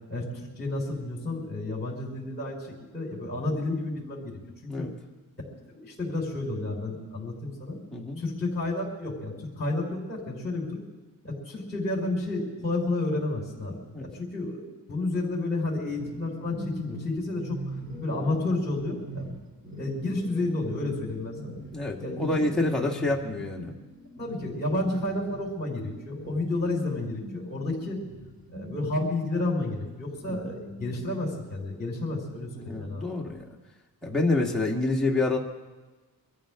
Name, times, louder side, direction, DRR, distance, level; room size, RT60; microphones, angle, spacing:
voice 1, 0.1-4.9 5.7-7.8 8.2-10.8 11.2-17.6 18.0-19.4 19.7-21.6 22.0-22.8 24.2-28.0 28.5-33.1, left 2 dB, 25° left, -2 dB, 5.3 m, -31 dB
voice 2, 7.9-8.2 13.9-14.1 21.7-23.7 30.3-30.5 32.6-33.5 34.0-35.4, left 2 dB, ahead, -3 dB, 2.0 m, -27 dB
sound 1, 16.0-29.7 30.1-32.9, right 1 dB, 25° right, 4.7 m, -42 dB
24.0 x 14.5 x 3.8 m, 1.2 s
cardioid pair, 140°, 36 cm